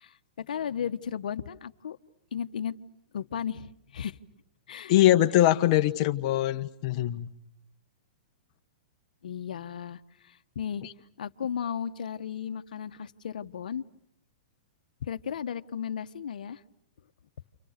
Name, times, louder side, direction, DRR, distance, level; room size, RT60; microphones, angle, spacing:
voice 1, 0.0-2.0 2.3-2.8 3.1-4.2 4.7-4.9 9.2-10.8 11.2-13.8 15.0-16.6, left 8 dB, 80° left, 1.2 m, -35 dB
voice 2, 4.9-7.3, left 14 dB, 40° left, 1.5 m, -22 dB
30.0 x 28.5 x 6.7 m
hypercardioid pair, 145°, 4 cm